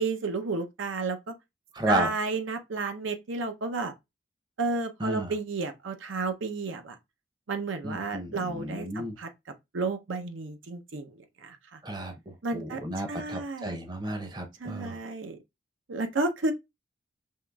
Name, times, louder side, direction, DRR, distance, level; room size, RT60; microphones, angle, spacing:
voice 1, 0.0-1.3 1.9-3.9 4.6-7.0 7.5-9.3 9.7-11.8 12.4-12.8 13.1-13.8 14.6-15.4 15.9-16.5, right 3 dB, 90° right, 0.7 m, -32 dB
voice 2, 1.7-2.1 5.0-5.3 7.8-9.2 11.8-15.0, right 1 dB, 20° right, 0.6 m, -33 dB
5.4 x 3.1 x 2.3 m
head